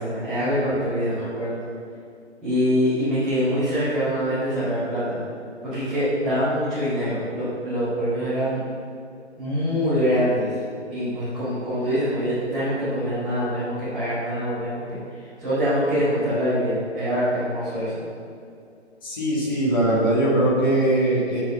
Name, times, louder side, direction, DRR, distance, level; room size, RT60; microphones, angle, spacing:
voice 1, 0.0-1.7 2.4-5.2 5.6-8.6 9.4-10.5 10.9-15.0 15.4-18.0, equal, ahead, -22 dB, 0.6 m, -24 dB
voice 2, 19.0-21.4, right 1 dB, 20° left, -5 dB, 1.7 m, -21 dB
9.0 x 7.0 x 6.7 m, 2.4 s
hypercardioid pair, 170°, 35 cm